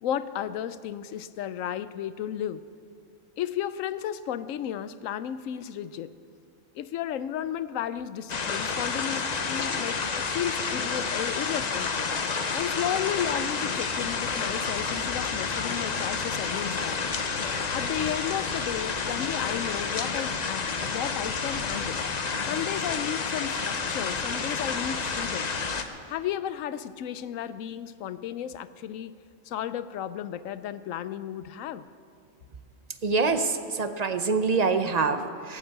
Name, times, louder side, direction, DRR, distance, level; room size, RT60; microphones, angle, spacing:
voice 1, 0.0-2.6 3.4-6.1 6.8-10.0 10.3-12.1 12.5-22.0 22.4-25.6 26.1-29.2 29.4-31.9, left 10 dB, 75° left, 14 dB, 1.0 m, -33 dB
sound 1, 8.3-25.8, left 5 dB, 40° left, 0.7 m, -30 dB
voice 2, 33.0-35.6, right 4 dB, 40° right, 8 dB, 0.6 m, -25 dB
16.5 x 8.0 x 7.4 m, 2.2 s
omnidirectional pair, 1.4 m